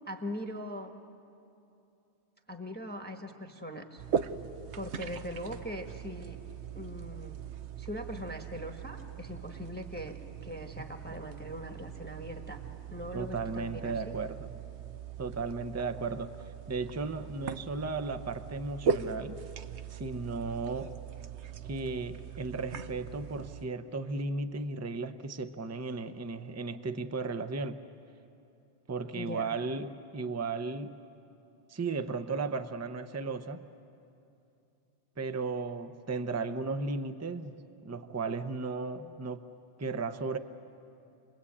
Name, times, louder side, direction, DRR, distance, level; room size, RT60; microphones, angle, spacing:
voice 1, 0.1-0.9 2.5-4.0 4.7-6.4 6.7-7.4 7.8-12.6 12.9-14.1 29.1-29.5, equal, 10° left, 4 dB, 1.2 m, -41 dB
sound 1, 4.0-23.7, right 7 dB, 75° right, 1.1 m, -39 dB
voice 2, 13.1-14.5 15.2-16.3 16.7-19.4 19.9-20.9 21.6-27.8 28.9-31.0 31.7-33.7 35.2-39.4 39.8-40.4, right 3 dB, 15° right, 9 dB, 0.6 m, -35 dB
28.5 x 21.0 x 8.6 m, 2.7 s
omnidirectional pair, 1.2 m